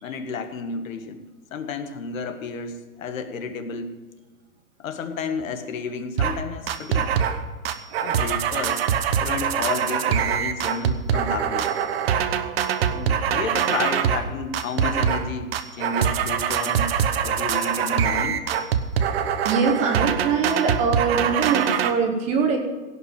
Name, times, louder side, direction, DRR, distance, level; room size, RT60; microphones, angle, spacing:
voice 1, 0.0-1.2 1.5-3.9 4.8-7.1 8.0-8.8 9.2-11.7 12.9-16.9 17.2-18.5, left 5 dB, 60° left, 7 dB, 1.7 m, -31 dB
Dog Melody (funny loop), 6.2-6.4 6.7-7.4 7.6-14.3 14.5-15.3 15.5-21.9, right 8 dB, 40° right, 1.0 m, -23 dB
voice 2, 19.4-22.6, right 5 dB, 15° right, 4 dB, 0.9 m, -22 dB
17.0 x 5.9 x 9.0 m, 1.4 s
hypercardioid pair, 165°, 45 cm